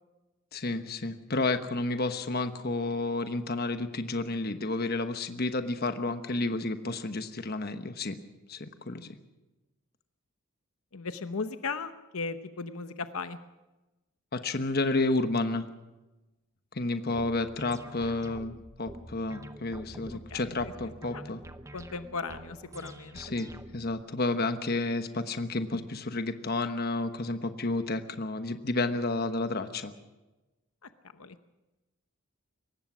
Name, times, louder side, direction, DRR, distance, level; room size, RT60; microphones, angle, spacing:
voice 1, 0.5-8.2 8.5-9.1 14.3-15.7 16.7-21.4 23.1-29.9, left 2 dB, 45° left, 9 dB, 1.2 m, -31 dB
voice 2, 10.9-13.4 20.3-20.4 21.1-21.3 21.7-23.2 31.2-31.4, left 4 dB, 80° left, 10 dB, 0.9 m, -36 dB
sound 1, 17.2-24.0, right 1 dB, 15° right, 0.7 m, -47 dB
23.0 x 19.0 x 6.2 m, 1.1 s
head